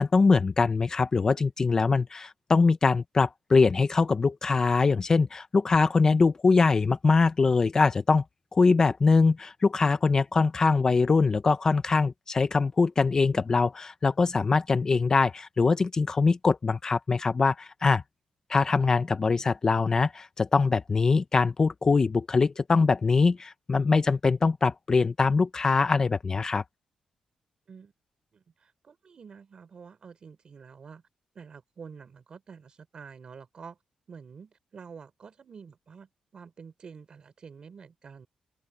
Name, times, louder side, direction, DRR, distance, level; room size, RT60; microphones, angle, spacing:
voice 1, 0.0-8.2 8.5-18.0 18.5-26.6, left 4 dB, 25° left, 0.6 m, -23 dB
voice 2, 28.3-31.0 31.3-33.8 34.1-38.3, right 6 dB, 40° right, 4.2 m, -48 dB
open air
wide cardioid pair, 160°, 2 cm